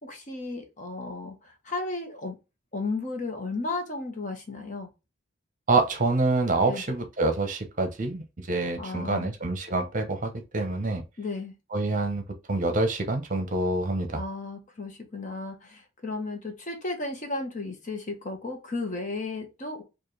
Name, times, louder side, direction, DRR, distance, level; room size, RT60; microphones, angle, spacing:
voice 1, 0.0-2.4 2.7-4.9 6.7-6.8 8.8-9.3 11.2-11.5 14.1-19.8, left 3 dB, 40° left, 1.1 m, -34 dB
voice 2, 5.7-11.0 11.7-12.2 12.5-14.2, right 2 dB, 40° right, 0.9 m, -26 dB
4.2 x 2.6 x 3.3 m
head